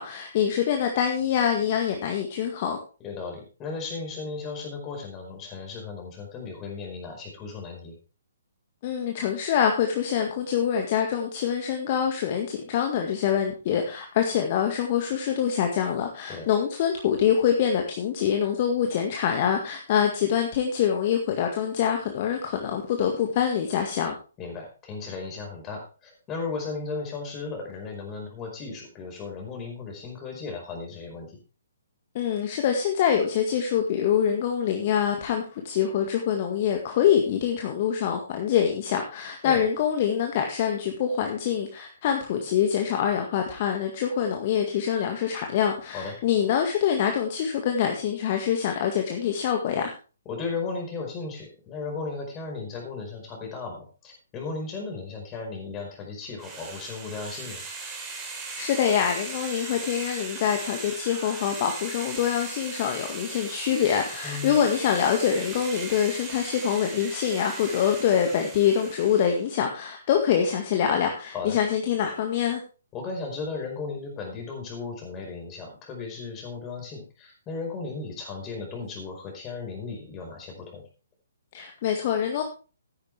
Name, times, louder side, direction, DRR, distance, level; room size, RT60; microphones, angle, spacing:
voice 1, 0.0-2.8 8.8-24.2 32.1-49.9 58.6-72.6 81.5-82.4, left 8 dB, 40° left, 3 dB, 1.8 m, -25 dB
voice 2, 3.0-8.0 16.3-16.5 24.4-31.4 39.4-39.6 45.9-46.2 50.2-57.6 64.2-64.5 71.3-71.6 72.9-80.8, left 4 dB, 20° left, 2 dB, 5.0 m, -35 dB
sound 1, 56.4-69.5, right 4 dB, 15° right, 4.0 m, -38 dB
14.0 x 10.5 x 3.5 m, 0.35 s
figure-of-eight pair, 130°, 0 cm